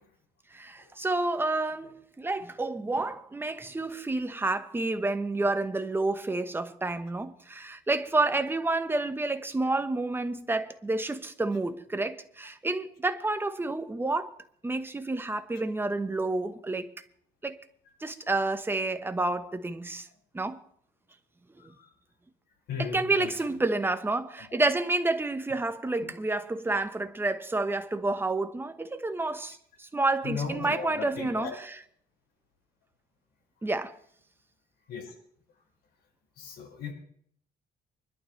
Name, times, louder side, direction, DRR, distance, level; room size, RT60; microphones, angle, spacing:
voice 1, 0.5-14.3 14.6-16.9 17.4-17.6 18.0-20.1 20.3-20.6 22.8-31.8 33.6-33.9, right 2 dB, 15° right, 1.2 m, -29 dB
voice 2, 21.6-21.9 22.7-23.3 30.2-31.5 34.9-35.1 36.4-36.9, left 6 dB, 70° left, 5.5 m, -36 dB
24.5 x 12.0 x 3.3 m
cardioid pair, 110°, 17 cm